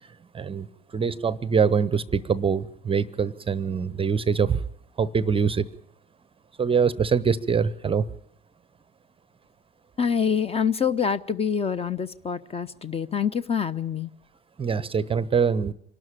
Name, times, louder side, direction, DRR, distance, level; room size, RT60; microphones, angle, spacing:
voice 1, 0.3-0.7 0.9-4.6 5.0-5.7 6.6-8.1 14.6-15.7, right 6 dB, 20° right, 19 dB, 0.8 m, -24 dB
voice 2, 10.0-14.1, left 7 dB, 20° left, 17 dB, 0.8 m, -26 dB
26.5 x 12.5 x 8.8 m, 0.68 s
figure-of-eight pair, 75°, 30 cm